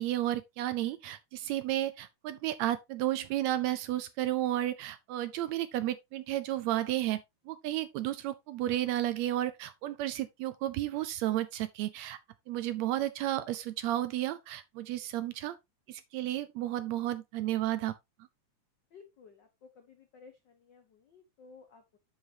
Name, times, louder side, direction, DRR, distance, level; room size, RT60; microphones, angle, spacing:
voice 1, 0.0-7.2 7.5-12.2 12.5-15.6 15.9-17.9, right 13 dB, 80° right, 1.7 m, -32 dB
voice 2, 18.9-22.0, left 5 dB, 75° left, 1.0 m, -56 dB
7.9 x 7.3 x 2.7 m
omnidirectional pair, 3.5 m